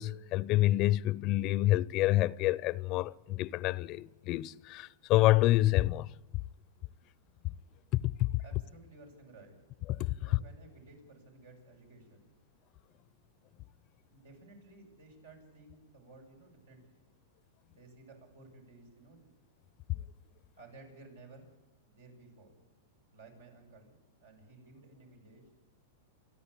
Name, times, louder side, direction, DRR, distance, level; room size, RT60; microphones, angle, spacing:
voice 1, 0.0-6.1 8.2-8.3 10.0-10.1, left 16 dB, 45° left, 0.6 m, -27 dB
voice 2, 8.4-9.5 10.2-12.3 14.1-17.1 17.7-19.3 20.6-21.5 21.9-22.5 23.1-25.5, right 3 dB, 90° right, 7.6 m, -55 dB
28.5 x 11.0 x 8.7 m
hypercardioid pair, 120°, 0 cm